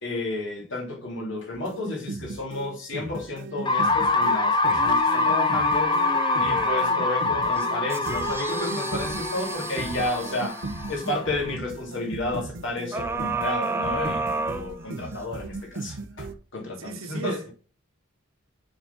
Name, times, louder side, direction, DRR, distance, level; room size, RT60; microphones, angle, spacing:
voice 1, 0.0-6.0 6.4-10.6 10.9-17.4, left 2 dB, 60° left, 2.6 m, -32 dB
sound 1, 1.5-16.3, right 2 dB, 60° right, 0.7 m, -38 dB
sound 2, 3.7-11.5, left 3 dB, 20° left, 0.8 m, -25 dB
sound 3, 3.8-7.0 7.5-11.2 12.9-15.2 15.8-15.9, right 3 dB, 10° right, 0.4 m, -33 dB
voice 2, 16.8-17.5, right 3 dB, 85° right, 1.6 m, -34 dB
6.9 x 4.0 x 5.8 m
head